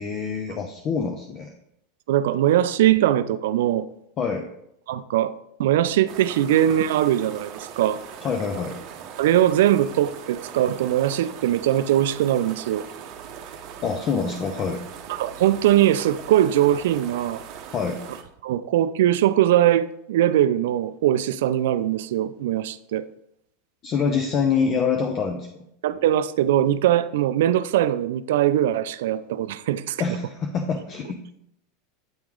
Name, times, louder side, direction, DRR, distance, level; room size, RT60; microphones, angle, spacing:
voice 1, 0.0-1.5 4.2-4.5 8.2-8.8 13.8-14.8 17.7-18.0 23.8-25.5 30.0-31.3, left 5 dB, 35° left, 3 dB, 0.6 m, -25 dB
voice 2, 2.1-3.8 4.9-5.3 5.6-8.0 9.2-12.8 15.1-17.4 18.4-23.1 25.8-30.0, right 12 dB, 80° right, 14 dB, 0.3 m, -21 dB
sound 1, 6.1-18.2, right 8 dB, 50° right, 0.7 m, -40 dB
8.7 x 3.1 x 3.6 m, 0.77 s
supercardioid pair, 135°, 0 cm